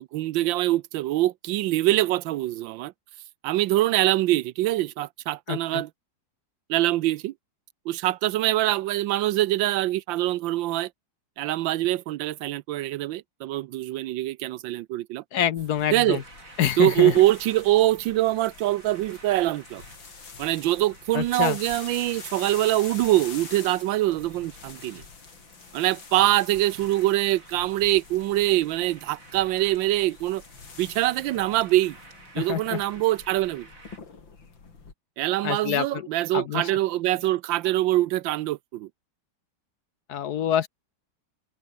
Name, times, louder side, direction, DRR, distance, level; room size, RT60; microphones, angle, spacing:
voice 1, 0.0-2.9 3.4-5.9 6.7-7.3 7.9-10.9 11.4-15.2 15.9-16.2 16.8-19.8 20.4-25.0 25.7-30.4 30.8-32.0 32.3-33.7 35.2-38.9, right 15 dB, 80° right, 1.4 m, -24 dB
voice 2, 5.5-5.8 15.3-16.2 16.6-17.1 21.1-21.6 32.4-32.8 35.4-36.0 36.3-36.7 40.1-40.7, left 10 dB, 65° left, 1.2 m, -26 dB
sound 1, 15.6-34.9, left 5 dB, 80° left, 4.1 m, -46 dB
sound 2, 16.0-34.0, right 3 dB, 45° right, 4.7 m, -52 dB
omnidirectional pair, 2.1 m